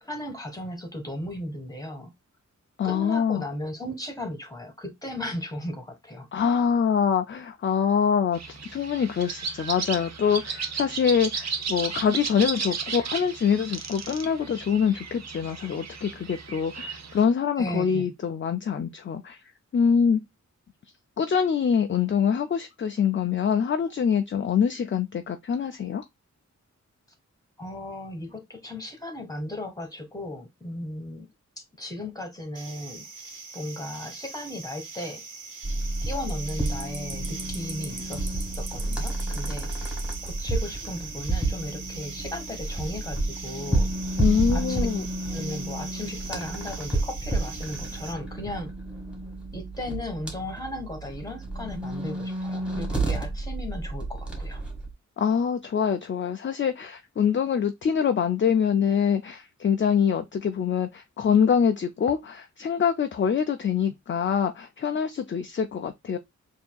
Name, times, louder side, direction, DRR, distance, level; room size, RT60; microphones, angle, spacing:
voice 1, 0.0-2.1 2.8-6.3 17.6-18.1 27.6-31.3 31.6-33.0 33.5-35.2 36.0-43.9 44.5-44.9 45.2-48.7 49.5-54.6, left 1 dB, 10° left, 1.4 m, -36 dB
voice 2, 2.8-3.4 6.3-8.4 8.7-19.4 19.7-20.2 21.2-26.0 44.2-45.0 55.2-66.2, left 7 dB, 40° left, 0.4 m, -24 dB
sound 1, 8.3-17.2, right 5 dB, 60° right, 0.8 m, -34 dB
sound 2, 32.5-48.1, right 4 dB, 90° right, 1.3 m, -41 dB
sound 3, 35.6-54.9, right 2 dB, 5° right, 1.7 m, -31 dB
6.8 x 2.8 x 2.3 m
wide cardioid pair, 155°, 30 cm